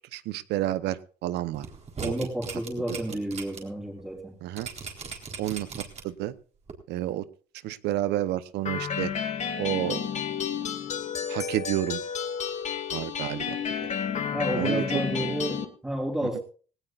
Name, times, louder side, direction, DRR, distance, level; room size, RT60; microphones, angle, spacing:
voice 1, 0.1-1.7 2.0-2.1 4.4-4.7 5.4-5.7 6.0-6.3 6.9-7.3 7.6-9.1 9.6-10.1 11.3-12.0 12.9-13.6 14.5-14.8, right 14 dB, 80° right, 14 dB, 0.9 m, -30 dB
sound 1, 1.5-3.6 4.0-4.1 4.6-6.2 6.7-6.8, right 5 dB, 40° right, 3.9 m, -38 dB
voice 2, 2.0-4.4 14.3-16.4, right 1 dB, 5° right, -3 dB, 3.6 m, -31 dB
sound 2, 8.7-15.7, left 7 dB, 45° left, 1.8 m, -31 dB
18.5 x 17.5 x 2.5 m, 0.39 s
cardioid pair, 110°, 17 cm